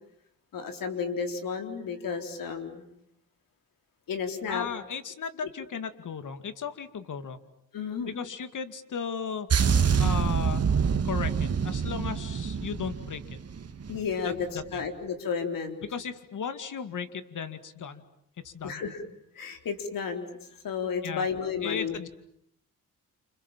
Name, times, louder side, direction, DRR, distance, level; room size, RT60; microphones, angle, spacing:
voice 1, 0.5-2.8 4.1-4.7 7.7-8.1 13.9-15.8 18.6-19.0 19.4-20.2 20.6-22.0, left 6 dB, 80° left, 6 dB, 4.1 m, -32 dB
voice 2, 4.5-7.4 8.1-9.5 10.0-10.7 11.0-13.4 14.2-14.8 15.8-18.0 18.4-18.8 21.0-21.3 21.6-22.1, left 6 dB, 65° left, 10 dB, 2.4 m, -36 dB
sound 1, 9.5-14.1 14.3-14.6, right 6 dB, 45° right, 1.9 m, -26 dB
29.0 x 27.5 x 7.5 m, 0.73 s
cardioid pair, 80°, 33 cm